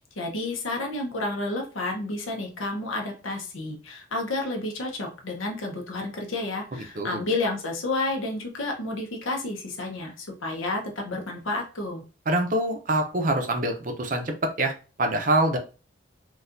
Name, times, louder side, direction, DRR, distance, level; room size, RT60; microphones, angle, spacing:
voice 1, 0.2-12.0, left 2 dB, 80° left, 1 dB, 0.8 m, -30 dB
voice 2, 12.3-15.6, right 1 dB, 40° right, 5 dB, 0.6 m, -25 dB
4.1 x 2.3 x 2.5 m, 0.34 s
head